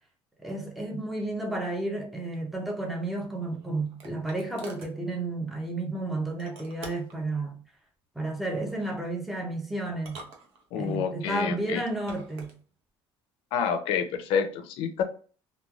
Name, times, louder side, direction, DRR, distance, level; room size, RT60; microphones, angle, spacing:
voice 1, 0.4-7.6 8.2-10.2 10.8-12.5, right 2 dB, ahead, 0.5 m, -32 dB
sound 1, 3.2-5.0 6.4-7.2 8.6-9.0 9.9-11.0 11.8-12.6, right 3 dB, 85° right, 0.7 m, -47 dB
voice 2, 10.7-11.8 13.5-15.0, left 7 dB, 70° left, 0.5 m, -28 dB
3.0 x 2.3 x 2.3 m
cardioid pair, 165°, 10 cm